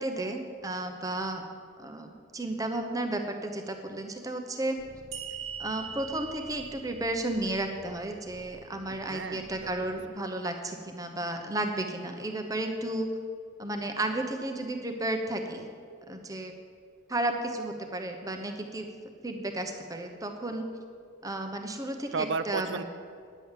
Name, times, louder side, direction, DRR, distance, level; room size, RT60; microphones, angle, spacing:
voice 1, 0.0-1.4 1.8-4.8 5.6-13.1 13.6-15.7 16.1-16.5 17.1-18.9 19.2-20.7 21.2-22.1 22.5-22.8, right 1 dB, 15° right, 5 dB, 0.9 m, -33 dB
sound 1, 4.8-10.1, left 1 dB, 70° left, 1.2 m, -53 dB
sound 2, 5.1-8.5, right 7 dB, 90° right, 1.4 m, -42 dB
voice 2, 8.9-9.5 9.8-10.0 22.1-22.8, right 4 dB, 65° right, 12 dB, 0.5 m, -33 dB
10.0 x 7.8 x 7.3 m, 2.2 s
head